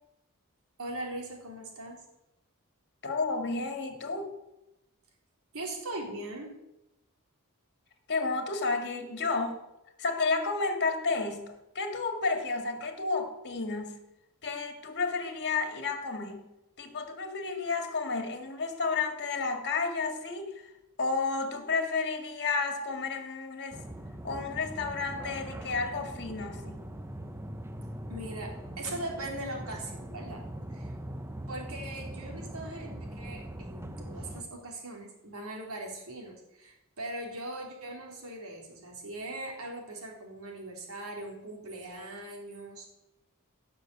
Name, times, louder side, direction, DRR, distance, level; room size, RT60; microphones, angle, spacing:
voice 1, 0.8-2.0 5.5-6.5 28.1-30.4 30.7-30.9 31.5-42.9, right 1 dB, 70° right, 0 dB, 3.8 m, -40 dB
voice 2, 3.0-4.3 8.1-9.6 10.0-14.0 14.4-16.4 16.8-20.7 21.0-23.8 24.2-26.8, left 4 dB, 50° left, 6 dB, 2.2 m, -31 dB
sound 1, 23.7-34.4, right 1 dB, 10° right, 0.8 m, -41 dB
16.0 x 6.8 x 7.9 m, 0.92 s
head